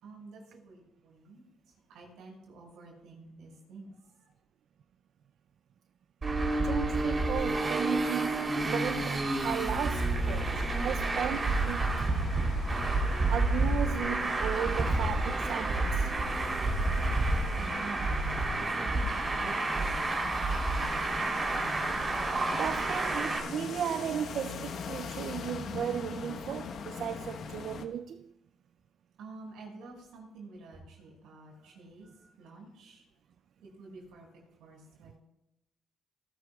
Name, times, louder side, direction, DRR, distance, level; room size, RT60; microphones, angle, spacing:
voice 1, 0.0-1.4 1.9-3.9 13.7-13.8 17.6-19.1 19.4-21.4 29.2-33.0 33.6-34.3 34.6-35.2, right 3 dB, 85° right, 5.4 m, -49 dB
Traffic noise roadway noise, 6.2-23.4, right 2 dB, 35° right, 3.3 m, -29 dB
voice 2, 6.6-12.1 13.3-16.1 22.5-28.3, right 9 dB, 70° right, 0.4 m, -35 dB
sound 1, 8.9-27.9, left 5 dB, 65° left, 1.1 m, -43 dB
19.0 x 12.5 x 2.3 m
cardioid pair, 90°, 0 cm